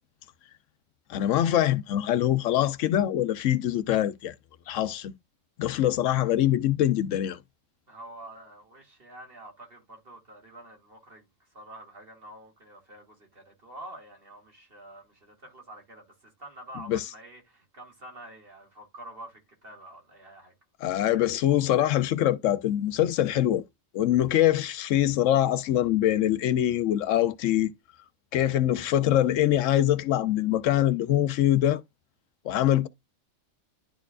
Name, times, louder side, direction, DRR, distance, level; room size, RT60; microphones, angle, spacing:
voice 1, 1.1-4.3 4.7-5.1 5.6-7.4 16.9-17.0 20.8-23.6 23.9-27.7 28.3-31.8 32.4-32.9, left 12 dB, 80° left, 0.9 m, -24 dB
voice 2, 7.9-20.5, right 1 dB, 50° right, 2.3 m, -47 dB
11.5 x 4.4 x 2.3 m
omnidirectional pair, 1.3 m